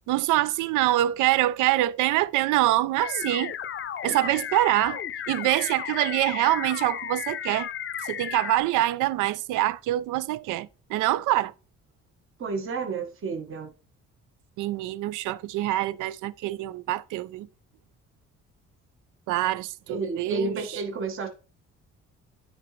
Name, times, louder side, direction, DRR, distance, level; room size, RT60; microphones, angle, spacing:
voice 1, 0.1-3.5 4.0-5.0 5.3-7.7 8.0-11.5 14.6-17.5 19.3-20.8, right 15 dB, 85° right, 0.5 m, -25 dB
sound 1, 3.0-8.6, left 9 dB, 40° left, 0.5 m, -34 dB
voice 2, 12.4-13.7 19.9-21.3, right 4 dB, 45° right, 1.2 m, -31 dB
9.1 x 3.9 x 3.1 m
cardioid pair, 90°, 30 cm